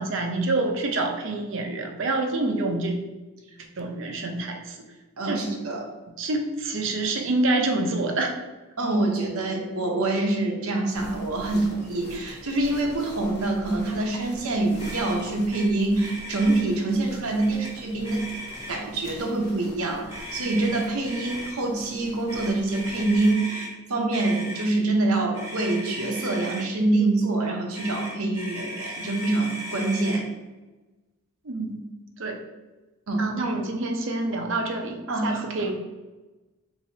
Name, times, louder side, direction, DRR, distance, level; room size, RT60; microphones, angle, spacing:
voice 1, 0.0-3.0 3.8-4.8 5.3-5.4 6.2-8.4 31.4-31.8 32.2-32.4 33.2-35.7, right 2 dB, 60° right, 3 dB, 0.6 m, -27 dB
voice 2, 5.2-5.9 8.8-18.3 18.7-30.3 33.1-33.3 35.1-35.4, right 2 dB, 85° right, 2 dB, 0.8 m, -25 dB
sound 1, 10.9-23.3, left 1 dB, 50° left, 0.8 m, -45 dB
Motor vehicle (road), 14.8-15.2 15.5-15.7 15.9-16.6 17.4-17.7 18.0-18.9 20.1-21.5 22.3-23.7 24.1-24.7 25.3-26.7 27.7-30.2, equal, 10° right, 0.9 m, -37 dB
4.7 x 4.0 x 2.7 m, 1.2 s
head